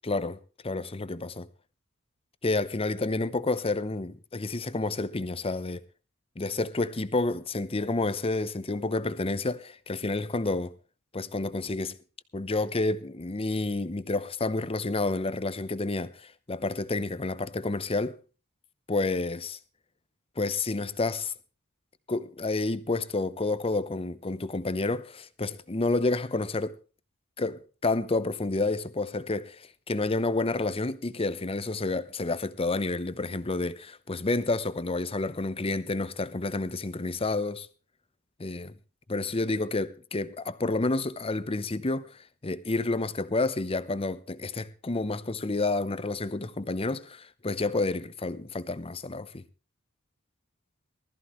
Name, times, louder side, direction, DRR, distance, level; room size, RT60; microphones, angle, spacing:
voice 1, 0.0-1.5 2.4-5.8 6.4-10.7 11.1-12.0 12.3-18.2 18.9-19.6 20.4-21.3 22.1-26.8 27.4-37.7 38.4-38.7 39.1-49.4, left 2 dB, 25° left, 0.8 m, -29 dB
19.5 x 14.0 x 3.1 m
head